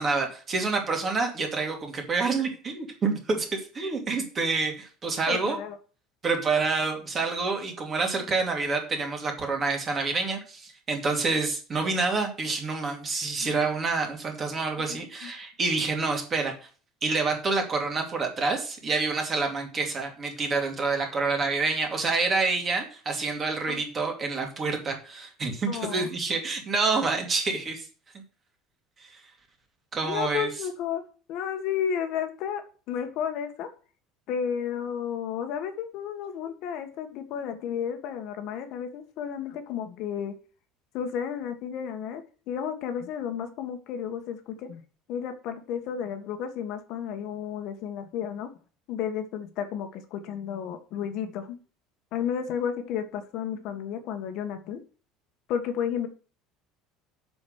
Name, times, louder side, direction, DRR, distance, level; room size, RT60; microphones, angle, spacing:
voice 1, 0.0-5.6 6.2-16.6 17.0-27.9 29.0-29.2 29.9-30.5, right 4 dB, 20° right, 3 dB, 2.5 m, -28 dB
voice 2, 5.3-5.8 13.4-13.5 14.8-15.3 23.7-23.8 25.7-26.1 30.0-31.0 31.3-32.6 32.9-33.7 34.3-40.3 40.9-44.8 45.1-48.5 48.9-51.6 52.1-54.8 55.5-56.1, left 8 dB, 50° left, 7 dB, 1.5 m, -32 dB
7.6 x 6.3 x 6.5 m, 0.37 s
cardioid pair, 165°, 0 cm